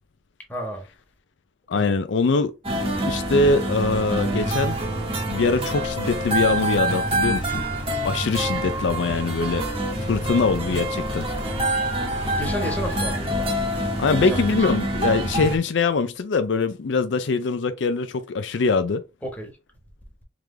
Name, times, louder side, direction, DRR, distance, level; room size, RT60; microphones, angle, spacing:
voice 1, 0.5-0.8 1.8-1.9 12.3-13.5 14.2-14.4 19.2-19.5, equal, 10° left, 1.3 m, -31 dB
voice 2, 1.7-2.5 3.1-4.8 5.3-7.6 8.0-9.7 10.1-11.3 14.0-19.0, left 4 dB, 80° left, 0.5 m, -23 dB
sound 1, 2.6-15.6, right 1 dB, 30° right, 1.2 m, -26 dB
3.7 x 3.2 x 3.2 m
head